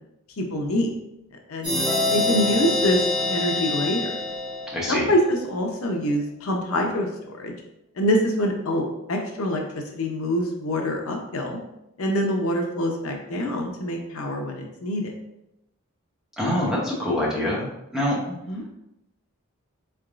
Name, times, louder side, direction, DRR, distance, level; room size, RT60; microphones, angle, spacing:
voice 1, 0.4-0.9 1.5-1.8 2.1-3.0 3.3-4.1 4.9-7.1 7.3-7.5 8.0-8.8 9.1-9.6 9.9-11.6 12.0-15.1 18.3-18.6, equal, 80° left, 2 dB, 0.6 m, -25 dB
sound 1, 1.6-5.2, left 2 dB, 20° right, 1.5 m, -25 dB
voice 2, 4.7-5.1 16.4-17.7 17.9-18.2, left 1 dB, 5° right, -5 dB, 0.8 m, -24 dB
3.8 x 3.4 x 2.4 m, 0.86 s
head